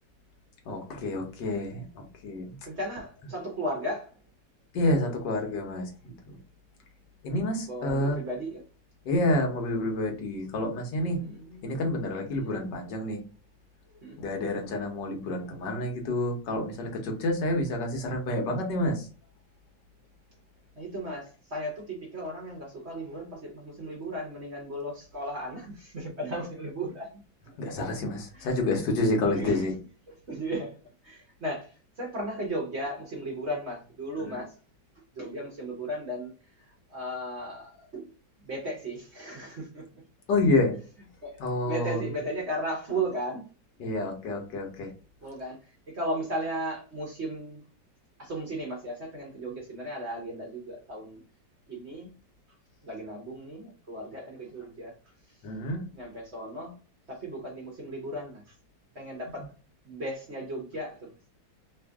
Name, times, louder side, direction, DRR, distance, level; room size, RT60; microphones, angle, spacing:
voice 1, 0.7-2.6 4.7-6.4 7.2-8.2 9.0-11.2 11.6-13.2 14.2-19.1 27.6-29.7 34.2-34.4 40.3-40.8 41.4-42.1 43.8-44.9 55.4-55.8, left 1 dB, 70° left, 1.5 m, -28 dB
voice 2, 2.7-4.2 7.7-8.6 11.2-11.8 12.3-12.5 13.9-14.2 20.8-27.2 27.4-27.6 28.3-28.5 29.2-29.7 30.1-30.8 31.0-34.5 35.1-38.1 38.4-39.8 41.2-43.4 45.2-47.6 48.2-51.2 51.7-52.1 52.8-54.9 55.3-55.4 55.9-56.7 57.1-58.5 58.9-59.5 59.8-61.1, right 1 dB, 45° right, 1.0 m, -36 dB
3.4 x 2.5 x 3.4 m
omnidirectional pair, 2.0 m